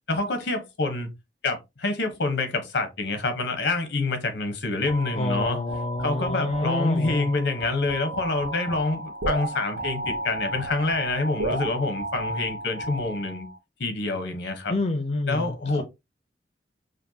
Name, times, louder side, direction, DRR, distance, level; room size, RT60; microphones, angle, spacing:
voice 1, 0.1-1.1 1.4-5.6 6.0-13.5 13.8-14.7 15.3-15.8, left 3 dB, 80° left, 1.0 m, -27 dB
sound 1, 4.9-13.6, right 1 dB, 85° right, 0.9 m, -33 dB
voice 2, 5.1-7.3 14.7-15.8, left 2 dB, 40° left, 0.5 m, -28 dB
5.2 x 2.2 x 2.7 m
head